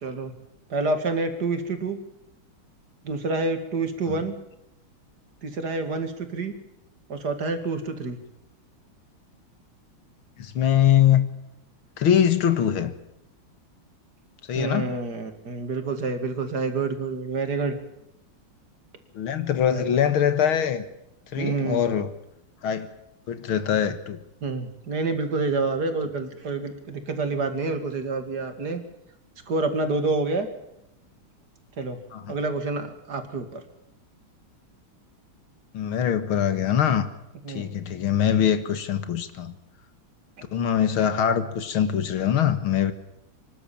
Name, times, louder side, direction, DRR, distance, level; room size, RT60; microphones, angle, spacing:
voice 1, 0.0-0.3 0.7-2.0 3.0-4.3 5.4-6.5 7.1-8.2 14.5-17.8 19.7-19.9 21.4-21.9 24.4-28.8 29.5-30.5 31.8-32.0 32.3-33.6 37.4-37.8, right 3 dB, 50° right, 8 dB, 2.6 m, -28 dB
voice 2, 10.4-11.3 12.0-12.9 14.5-15.0 19.1-20.8 21.3-22.1 22.6-22.9 23.3-24.2 32.1-32.4 35.7-37.1 37.5-39.6 40.5-42.9, left 9 dB, 85° left, 11 dB, 2.4 m, -23 dB
25.5 x 12.0 x 8.7 m, 0.86 s
omnidirectional pair, 2.2 m